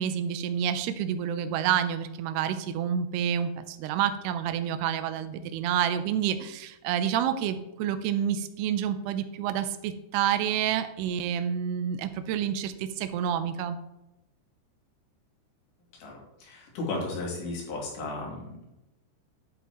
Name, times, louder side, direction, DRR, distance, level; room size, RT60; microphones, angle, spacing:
voice 1, 0.0-13.8, right 9 dB, 85° right, 10 dB, 2.3 m, -28 dB
voice 2, 15.9-18.7, left 2 dB, 70° left, -2 dB, 4.6 m, -35 dB
10.0 x 8.1 x 3.0 m, 0.94 s
omnidirectional pair, 5.3 m